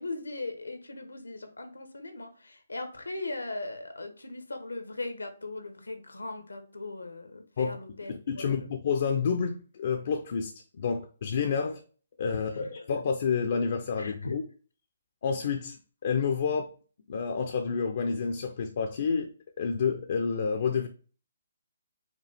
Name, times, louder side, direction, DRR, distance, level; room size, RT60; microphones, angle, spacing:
voice 1, 0.0-8.7 12.5-12.9 14.0-14.3, left 2 dB, 85° left, 1.0 m, -39 dB
voice 2, 8.1-11.8 12.2-14.4 15.2-15.8 16.0-16.7 17.1-19.3 19.6-20.9, left 6 dB, 55° left, 0.5 m, -29 dB
5.0 x 2.4 x 3.3 m
figure-of-eight pair, 140°, 0 cm